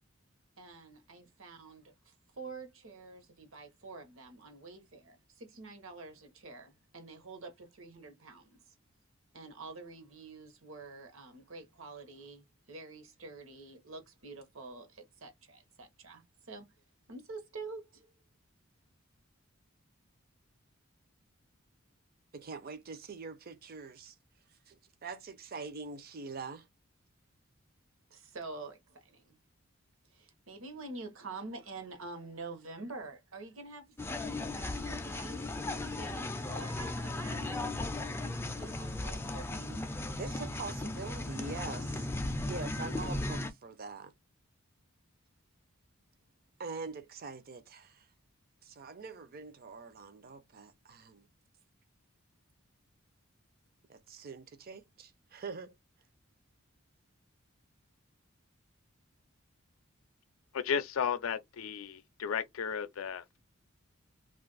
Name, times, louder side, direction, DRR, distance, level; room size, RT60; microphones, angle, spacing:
voice 1, 0.6-8.7 9.3-16.7 17.1-18.1 28.1-29.4 30.1-34.2 34.6-39.8, right 3 dB, 70° right, 0.9 m, -47 dB
voice 2, 22.3-24.1 24.7-26.7 40.2-42.1 42.5-44.1 46.6-48.1 48.6-51.3 53.9-55.8, right 4 dB, 45° right, 0.5 m, -44 dB
sound 1, 34.0-43.5, left 2 dB, 10° left, 0.4 m, -36 dB
voice 3, 60.5-63.4, left 7 dB, 75° left, 0.4 m, -34 dB
2.6 x 2.4 x 3.9 m
head